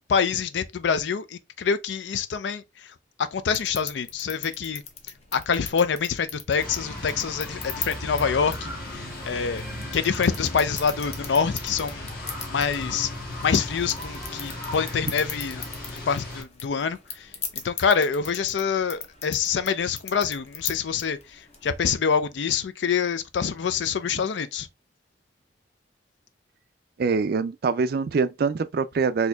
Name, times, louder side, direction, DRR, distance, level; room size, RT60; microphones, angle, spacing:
voice 1, 0.1-4.8 5.3-9.6 9.9-12.1 12.5-13.1 13.4-15.6 15.9-24.7, left 6 dB, 75° left, 0.4 m, -26 dB
sound 1, 3.5-22.0, left 6 dB, 35° left, 0.7 m, -40 dB
sound 2, 6.6-16.4, left 1 dB, 55° left, 1.4 m, -36 dB
voice 2, 27.0-29.3, right 5 dB, 55° right, 0.3 m, -24 dB
4.2 x 2.8 x 2.3 m
head